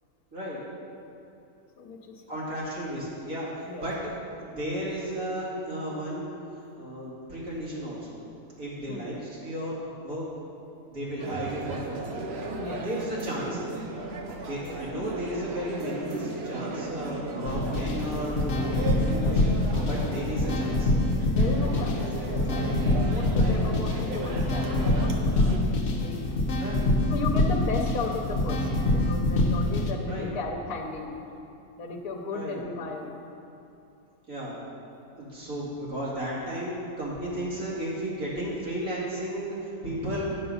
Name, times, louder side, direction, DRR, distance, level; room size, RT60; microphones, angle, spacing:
voice 1, 1.8-2.5 3.6-3.8 8.9-9.1 12.5-12.8 14.7-14.8 17.4-17.6 20.0-20.1 21.3-26.2 27.1-31.1 31.8-33.2, left 3 dB, 75° left, 1 dB, 1.3 m, -35 dB
voice 2, 2.3-4.0 4.4-6.3 6.7-8.2 8.6-10.2 10.9-12.2 12.8-13.6 14.4-18.5 18.9-19.5 19.9-20.9 23.4-23.6 26.5-26.8 30.1-30.3 32.3-32.6 34.3-34.5 35.2-40.3, equal, 70° right, -7 dB, 2.8 m, -34 dB
sound 1, 11.2-25.6, right 3 dB, 50° right, 0.9 m, -36 dB
sound 2, 17.5-29.9, left 2 dB, 60° left, 1.2 m, -25 dB
9.8 x 6.9 x 5.5 m, 2.8 s
omnidirectional pair, 1.6 m